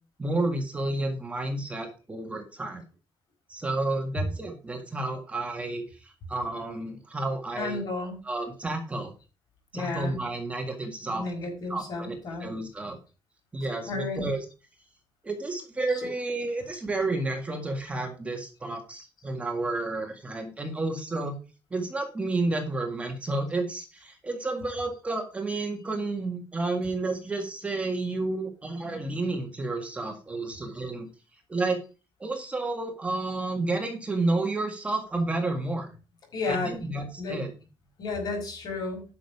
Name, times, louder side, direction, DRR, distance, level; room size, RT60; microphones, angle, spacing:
voice 1, 0.2-2.8 3.5-7.8 8.2-9.1 9.7-11.3 11.7-13.0 13.5-14.4 15.2-21.4 21.7-31.1 31.5-31.8 32.2-35.9 36.5-37.5, right 2 dB, 15° right, 3 dB, 1.8 m, -31 dB
voice 2, 7.6-8.1 9.7-10.2 11.0-12.5 13.9-14.2 36.3-36.7 37.2-37.4 38.0-39.0, left 3 dB, 55° left, 2 dB, 5.3 m, -32 dB
10.5 x 6.3 x 4.8 m, 0.32 s
cardioid pair, 165°, 8 cm